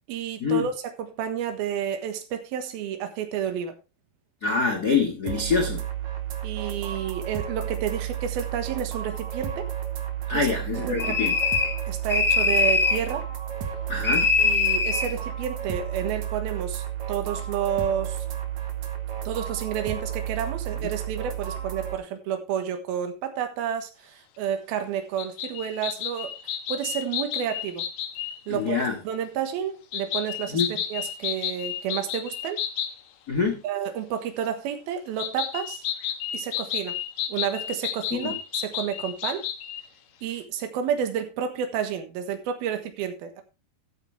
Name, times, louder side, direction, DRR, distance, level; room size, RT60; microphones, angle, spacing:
voice 1, 0.1-3.7 6.4-9.7 10.3-10.5 10.8-11.5 11.9-13.3 14.4-18.2 19.2-26.3 26.7-27.8 28.5-30.6 30.9-32.6 33.6-35.8 36.3-37.0 37.3-39.5 40.2-43.4, right 8 dB, 80° right, 3.3 m, -30 dB
voice 2, 4.4-5.8 10.3-11.3 13.9-14.3 28.5-28.9 30.5-30.7 33.3-33.6 38.2-38.3, left 5 dB, 45° left, 1.2 m, -25 dB
sound 1, 5.3-22.0, right 10 dB, 60° right, 2.6 m, -32 dB
sound 2, 11.0-11.8 12.1-13.0 14.0-15.1, left 4 dB, 5° left, 1.5 m, -22 dB
sound 3, 25.2-28.4 29.9-33.0 35.2-39.8, left 10 dB, 85° left, 3.2 m, -32 dB
13.5 x 8.7 x 3.3 m
omnidirectional pair, 4.4 m